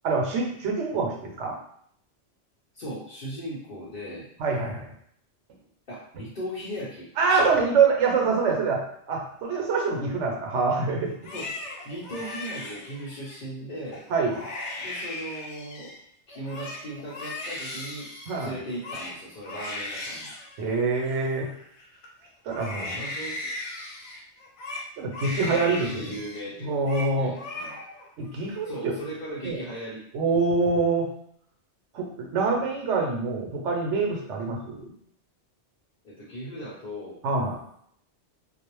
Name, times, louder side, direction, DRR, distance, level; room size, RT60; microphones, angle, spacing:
voice 1, 0.0-1.6 4.4-4.8 7.2-8.8 9.1-11.1 14.1-14.4 18.3-18.5 20.6-21.5 22.4-23.0 25.0-26.1 26.6-27.3 28.2-28.9 29.4-29.6 30.1-31.1 31.9-34.9 37.2-37.6, right 4 dB, 85° right, 0 dB, 1.0 m, -25 dB
voice 2, 2.7-4.3 5.9-7.1 11.3-14.0 14.8-15.9 16.3-18.1 18.4-20.3 22.8-23.5 25.4-27.8 28.6-30.4 36.0-37.2, equal, 50° left, -9 dB, 0.8 m, -38 dB
Crying sobbing, 11.1-13.4 13.9-14.0 14.3-16.0 16.3-22.1 22.5-26.4 26.7-27.1 27.4-28.1 28.4-29.1, left 2 dB, 80° left, 0.9 m, -37 dB
2.3 x 2.0 x 3.0 m, 0.68 s
omnidirectional pair, 1.2 m